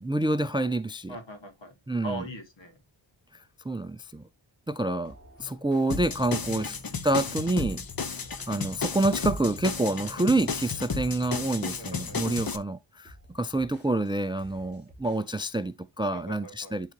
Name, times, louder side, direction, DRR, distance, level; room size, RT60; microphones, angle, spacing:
voice 1, 0.0-1.2 1.9-2.2 3.7-4.2 4.7-5.1 5.4-6.8 7.0-7.8 8.5-16.9, right 2 dB, 10° right, 0.4 m, -27 dB
voice 2, 1.1-1.7 2.0-2.8 6.5-6.8 11.8-12.4 16.1-16.8, right 1 dB, 65° left, 2.3 m, -41 dB
sound 1, 5.0-12.0 12.4-12.6 13.0-15.6, equal, 30° left, 3.4 m, -55 dB
sound 2, 5.4-12.1, left 1 dB, 10° left, 5.0 m, -48 dB
sound 3, 5.9-12.6, left 4 dB, 45° left, 1.1 m, -33 dB
11.5 x 3.9 x 2.9 m
wide cardioid pair, 95°, 48 cm